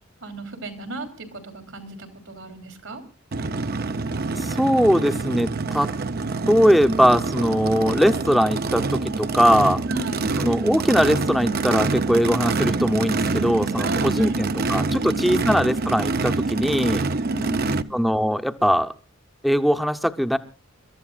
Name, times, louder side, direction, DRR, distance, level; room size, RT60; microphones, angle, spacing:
voice 1, 0.2-3.0 9.9-10.3 13.8-14.7 15.0-15.5 17.2-17.9, right 2 dB, 80° right, 7 dB, 3.1 m, -34 dB
Race car auto racing / Idling / Accelerating revving vroom, 3.3-17.8, right 3 dB, 50° right, 0.7 m, -26 dB
voice 2, 4.4-5.9 6.5-9.8 10.4-17.1 17.9-18.9 19.4-20.4, equal, ahead, 7 dB, 0.8 m, -21 dB
29.5 x 14.0 x 2.5 m, 0.32 s
head